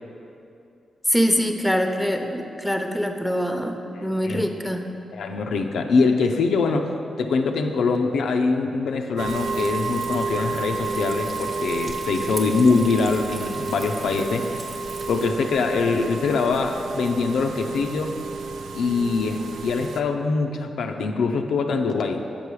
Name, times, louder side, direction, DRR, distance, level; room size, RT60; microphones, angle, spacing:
voice 1, 1.1-4.9, equal, 5° left, 4 dB, 0.7 m, -24 dB
voice 2, 3.9-4.5 5.1-6.9 7.2-14.5 15.1-18.1 18.7-22.2, left 4 dB, 80° left, 4 dB, 0.4 m, -23 dB
Frying (food), 9.2-15.3, right 2 dB, 55° right, 0.8 m, -40 dB
sound 1, 9.2-20.0, right 4 dB, 80° right, 0.3 m, -31 dB
6.9 x 5.3 x 4.7 m, 2.6 s
supercardioid pair, 50°, 0 cm